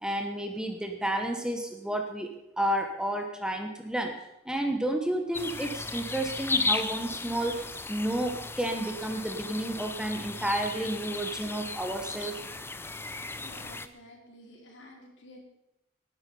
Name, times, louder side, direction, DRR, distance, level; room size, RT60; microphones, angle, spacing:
voice 1, 0.0-4.1 4.4-12.4, right 1 dB, 5° right, 4 dB, 1.2 m, -31 dB
sound 1, 5.3-13.9, left 3 dB, 10° left, 0.6 m, -35 dB
voice 2, 13.3-15.4, left 1 dB, 65° left, 0 dB, 4.5 m, -51 dB
19.0 x 11.0 x 5.6 m, 0.90 s
head